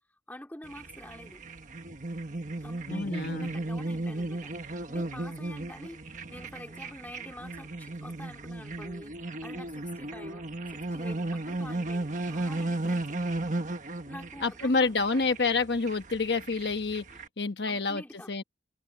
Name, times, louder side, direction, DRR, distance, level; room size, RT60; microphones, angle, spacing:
voice 1, 0.3-1.4 2.6-13.2 14.1-15.4 17.1-17.2 17.7-18.3, left 1 dB, 10° left, 2.7 m, -47 dB
sound 1, 0.6-17.3, right 2 dB, 45° right, 1.4 m, -35 dB
voice 2, 2.9-3.5 14.4-17.0 17.4-18.0 18.3-18.4, left 4 dB, 70° left, 1.2 m, -28 dB
head